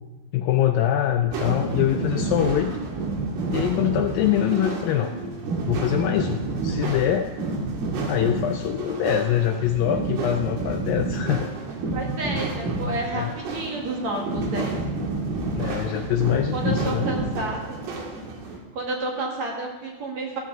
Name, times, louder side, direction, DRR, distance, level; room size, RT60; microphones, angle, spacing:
voice 1, 0.3-2.8 3.5-5.1 5.7-7.3 8.1-11.5 12.8-13.3 15.5-17.1, left 11 dB, 85° left, 5 dB, 2.0 m, -24 dB
sound 1, 1.3-18.6, right 3 dB, 75° right, 3.9 m, -29 dB
voice 2, 11.9-14.8 16.5-17.8 18.7-20.4, right 2 dB, 50° right, -1 dB, 2.7 m, -30 dB
14.5 x 14.0 x 3.9 m, 1.1 s
omnidirectional pair, 4.6 m